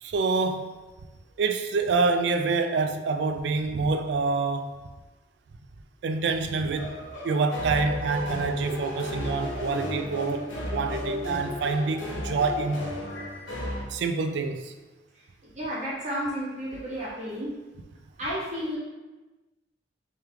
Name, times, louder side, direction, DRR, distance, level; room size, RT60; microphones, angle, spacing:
voice 1, 0.0-0.7 1.4-4.8 6.0-6.9 7.2-10.4 10.7-12.8 13.9-14.7, right 4 dB, 60° right, 0.3 m, -26 dB
sound 1, 6.7-13.8, left 1 dB, 80° left, 0.8 m, -34 dB
voice 2, 15.5-17.5 18.2-18.8, equal, 40° right, 1.3 m, -32 dB
3.3 x 3.1 x 3.4 m
head